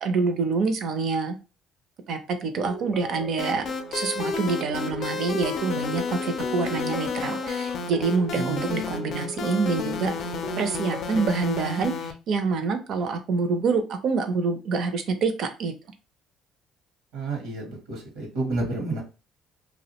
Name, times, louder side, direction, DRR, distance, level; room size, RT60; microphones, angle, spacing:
voice 1, 0.0-1.4 2.1-10.3 10.6-15.7, right 4 dB, 65° right, 7 dB, 0.5 m, -26 dB
sound 1, 2.6-11.3, right 1 dB, ahead, 0.5 m, -38 dB
sound 2, 3.4-12.1, left 5 dB, 65° left, 0.4 m, -32 dB
voice 2, 17.1-19.0, right 3 dB, 90° right, 1 dB, 0.9 m, -30 dB
2.4 x 2.1 x 2.8 m, 0.32 s
supercardioid pair, 80°, 0 cm